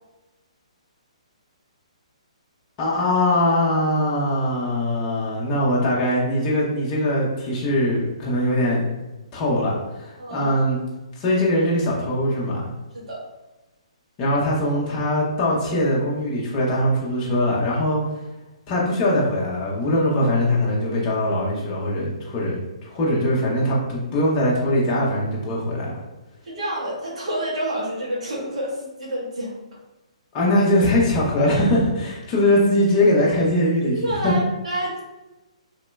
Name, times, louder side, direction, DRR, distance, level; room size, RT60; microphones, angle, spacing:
voice 1, 2.8-8.9 9.3-10.8 11.2-12.6 14.2-18.0 18.7-22.6 22.8-26.0 30.3-34.3, left 1 dB, 25° left, -5 dB, 0.8 m, -21 dB
voice 2, 10.2-10.5 12.9-13.2 26.4-29.5 31.4-31.5 33.8-35.0, right 1 dB, 70° right, -4 dB, 1.1 m, -28 dB
3.0 x 2.7 x 2.2 m, 1.1 s
hypercardioid pair, 145°, 4 cm